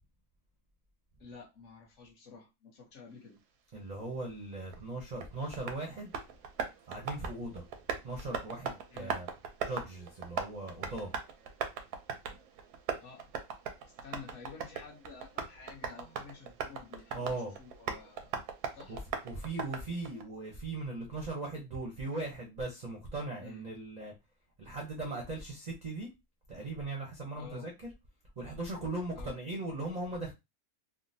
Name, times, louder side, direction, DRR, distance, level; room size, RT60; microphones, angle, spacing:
voice 1, 1.2-3.4 8.9-9.2 13.0-13.3 13.8-18.4 18.7-19.0 23.4-23.7 27.4-27.7 29.1-29.4, left 5 dB, 55° left, 1.1 m, -51 dB
voice 2, 3.7-6.1 6.9-7.6 8.0-9.3 9.6-11.1 17.1-17.6 18.9-19.0 19.2-24.1 24.6-26.1 26.5-27.9 28.4-30.3, right 2 dB, 45° right, 0.5 m, -39 dB
Tap, 4.7-20.2, right 6 dB, 85° right, 1.2 m, -40 dB
3.6 x 2.1 x 2.6 m
omnidirectional pair, 1.6 m